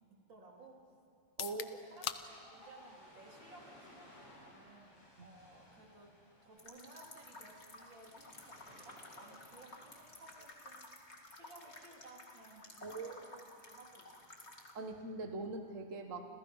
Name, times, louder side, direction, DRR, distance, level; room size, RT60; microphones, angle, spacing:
voice 1, 0.1-0.8 1.5-6.1 6.4-14.3, right 2 dB, 35° right, -1 dB, 3.9 m, -58 dB
sound 1, 1.2-15.1, left 10 dB, 90° left, 1.2 m, -53 dB
Ocean, 2.0-10.4, left 1 dB, 65° left, 8.9 m, -60 dB
sound 2, 6.6-14.7, left 2 dB, 20° left, 2.2 m, -54 dB
voice 2, 12.8-13.2 14.7-16.2, right 3 dB, 65° right, 5 dB, 0.7 m, -42 dB
30.0 x 27.5 x 5.6 m, 2.5 s
omnidirectional pair, 3.7 m